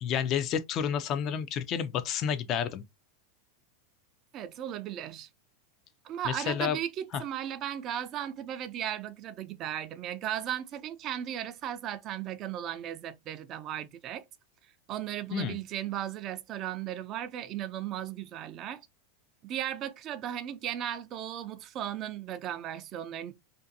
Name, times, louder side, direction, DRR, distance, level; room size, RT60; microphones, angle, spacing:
voice 1, 0.0-2.8 6.3-6.8 15.3-15.6, left 8 dB, 40° left, 0.3 m, -30 dB
voice 2, 4.3-5.3 6.0-14.2 14.9-18.9 19.4-23.3, right 11 dB, 40° right, 0.3 m, -36 dB
2.5 x 2.2 x 2.6 m
hypercardioid pair, 115°, 0 cm